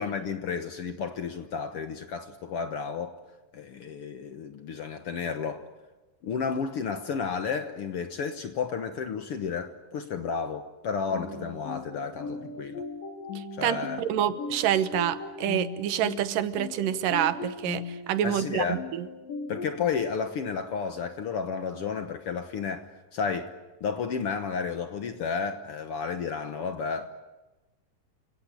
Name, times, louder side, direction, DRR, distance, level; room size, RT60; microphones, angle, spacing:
voice 1, 0.0-3.2 3.5-5.7 6.2-12.8 13.6-14.0 18.2-18.8 19.5-23.5 23.8-27.1, left 6 dB, 60° left, 8 dB, 1.6 m, -32 dB
sound 1, 11.1-19.8, left 4 dB, 85° left, 3.9 m, -38 dB
voice 2, 13.4-18.8, right 11 dB, 85° right, 13 dB, 2.7 m, -27 dB
28.5 x 17.5 x 9.9 m, 1.1 s
omnidirectional pair, 3.8 m